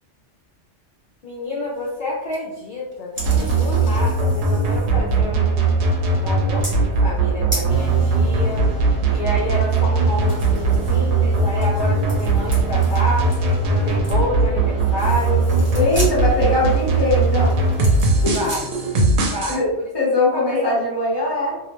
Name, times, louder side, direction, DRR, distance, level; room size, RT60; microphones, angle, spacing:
voice 1, 1.2-5.7 6.1-8.7 9.1-15.5 18.2-18.6 19.3-19.8 20.3-20.6, left 1 dB, 60° left, -4 dB, 0.6 m, -29 dB
sound 1, 1.7-2.0 2.3-2.4 2.9-5.0 5.4-5.7 6.6-6.9 7.2-7.3 7.5-7.7 10.3-14.2 14.6-14.7 15.0-16.2 16.7-16.9 17.4-18.6, right 1 dB, 15° right, 0.6 m, -36 dB
sound 2, 3.2-19.6, right 3 dB, 75° right, 0.8 m, -19 dB
sound 3, 7.7-19.0, equal, 40° right, 0.9 m, -37 dB
voice 2, 15.7-17.6 18.2-18.5 19.5-19.7 19.9-21.6, left 2 dB, 25° left, -5 dB, 0.8 m, -21 dB
2.3 x 2.1 x 2.9 m, 0.92 s
omnidirectional pair, 1.1 m